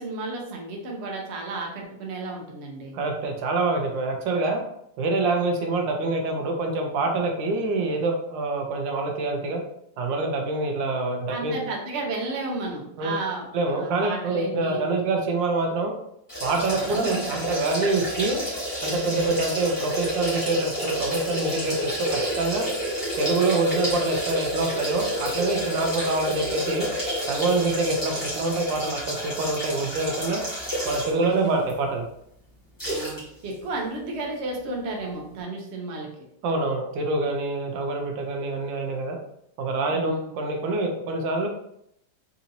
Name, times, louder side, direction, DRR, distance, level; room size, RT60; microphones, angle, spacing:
voice 1, 0.0-2.9 11.3-14.8 16.7-17.4 31.0-31.7 32.8-36.1 39.9-40.3, right 3 dB, 50° right, -1 dB, 0.8 m, -33 dB
voice 2, 2.9-4.6 5.0-9.6 10.0-11.6 13.0-13.1 13.5-15.9 16.4-18.4 18.8-22.7 23.2-26.9 27.3-30.4 30.8-32.0 36.4-39.2 39.6-41.5, right 2 dB, 90° right, 2 dB, 1.4 m, -26 dB
sound 1, 16.3-31.3 31.7-31.8 32.8-33.2 33.5-33.6, right 1 dB, 15° left, 1.0 m, -30 dB
3.9 x 2.9 x 2.6 m, 0.76 s
omnidirectional pair, 2.0 m